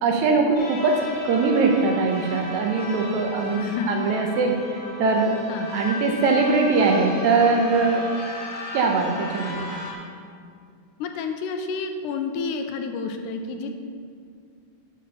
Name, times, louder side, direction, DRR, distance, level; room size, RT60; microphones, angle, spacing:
voice 1, 0.0-3.6 3.9-5.4 5.7-8.1 8.7-9.7, right 4 dB, 75° right, 2 dB, 2.0 m, -21 dB
sound 1, 0.5-9.9, left 2 dB, 50° left, 2.5 m, -36 dB
voice 2, 3.6-4.0 5.5-5.7 11.0-13.8, left 4 dB, 85° left, 5 dB, 2.1 m, -29 dB
7.6 x 5.9 x 5.6 m, 2.3 s
omnidirectional pair, 3.6 m